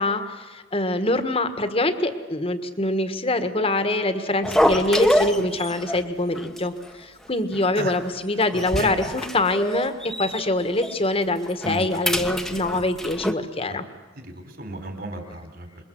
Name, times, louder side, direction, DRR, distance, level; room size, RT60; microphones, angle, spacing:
voice 1, 0.0-13.8, left 2 dB, 30° left, 9 dB, 1.7 m, -24 dB
sound 1, 4.4-6.0 6.3-6.6 6.8-6.9 7.5-8.0 8.4-10.5 10.8-11.0 11.4-13.3, equal, ahead, 1.3 m, -25 dB
voice 2, 8.5-8.9 11.6-11.9 12.7-12.9 13.7-13.8 14.2-15.8, right 1 dB, 55° right, 5 dB, 4.2 m, -33 dB
27.5 x 22.5 x 7.9 m, 1.3 s
head